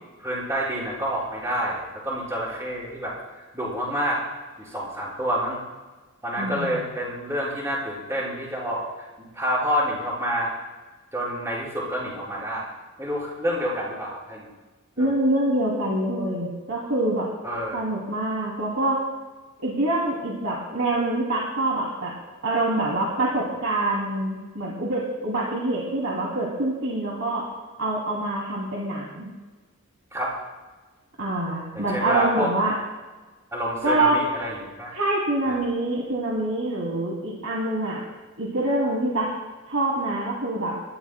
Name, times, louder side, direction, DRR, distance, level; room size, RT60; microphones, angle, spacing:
voice 1, 0.2-3.1 3.5-4.2 4.6-5.6 6.2-8.8 9.3-10.5 11.1-12.7 13.0-14.5 15.0-15.1 17.4-17.8 30.1-30.4 31.7-32.5 33.5-34.9 35.5-35.6, equal, 15° right, -5 dB, 4.9 m, -28 dB
voice 2, 6.4-6.8 15.0-17.3 17.7-19.0 19.6-22.1 22.4-27.5 27.8-29.3 31.2-32.8 33.8-34.2 34.9-38.0 38.4-39.3 39.7-40.7, right 2 dB, 65° right, -4 dB, 2.7 m, -25 dB
27.0 x 14.0 x 2.2 m, 1.3 s
head